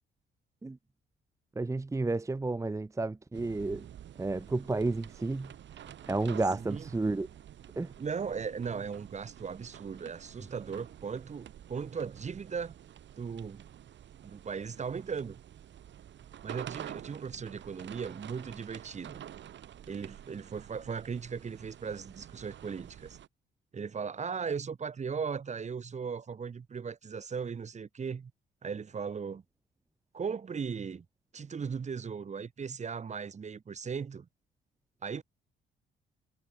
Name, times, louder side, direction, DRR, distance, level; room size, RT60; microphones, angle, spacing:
voice 1, 1.6-3.8 4.2-5.5 6.1-7.3 7.8-7.9, right 3 dB, 15° right, 0.8 m, -31 dB
sound 1, 3.3-23.3, right 10 dB, 65° right, 3.6 m, -49 dB
voice 2, 6.6-6.9 8.0-12.7 13.2-13.6 14.2-15.4 16.4-19.2 19.9-23.2 23.7-28.3 28.6-29.4 30.1-31.0 31.3-34.3 35.0-35.2, right 6 dB, 35° right, 1.3 m, -37 dB
cardioid pair, 90°, 20 cm